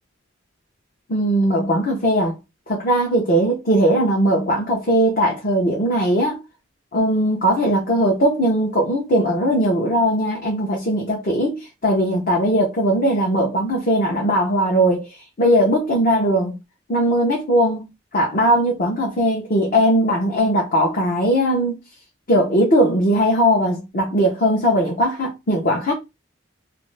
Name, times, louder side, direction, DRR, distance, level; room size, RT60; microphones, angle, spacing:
voice 1, 1.1-2.3 2.7-6.4 6.9-15.1 15.4-16.5 16.9-17.9 18.1-21.8 22.3-25.9, equal, 45° left, 0.8 m, -19 dB
2.6 x 2.5 x 3.2 m
head